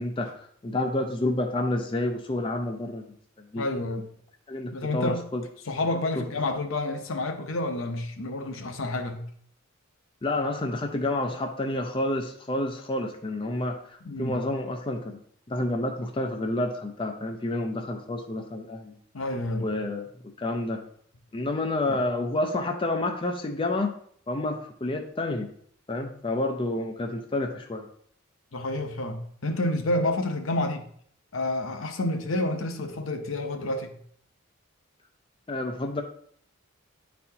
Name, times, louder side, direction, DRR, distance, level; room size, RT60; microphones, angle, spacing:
voice 1, 0.0-3.0 3.5-3.6 4.5-5.4 6.2-6.3 10.2-15.2 15.5-19.0 19.6-20.1 20.4-20.8 21.3-23.9 24.3-25.5 25.9-27.8 35.5-36.0, left 2 dB, 25° left, 3 dB, 0.4 m, -29 dB
voice 2, 3.6-4.0 4.7-5.3 5.7-9.2 14.0-14.4 19.1-19.7 21.9-22.0 28.5-30.8 31.3-34.0, left 2 dB, 65° left, 6 dB, 0.8 m, -29 dB
9.5 x 4.2 x 2.8 m, 0.62 s
head